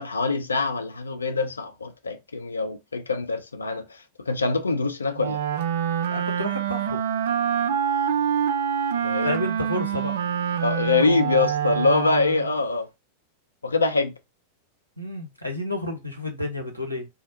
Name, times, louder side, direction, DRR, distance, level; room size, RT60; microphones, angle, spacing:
voice 1, 0.0-5.4 9.0-9.4 10.6-12.9 13.6-14.1, left 3 dB, 75° left, 0.5 m, -24 dB
Wind instrument woodwind instrument, 5.2-12.6, right 8 dB, 60° right, 0.4 m, -26 dB
voice 2, 6.1-7.0 9.2-10.1 15.0-17.1, left 1 dB, 90° right, 0.8 m, -31 dB
2.8 x 2.1 x 3.9 m
figure-of-eight pair, 90°, 0 cm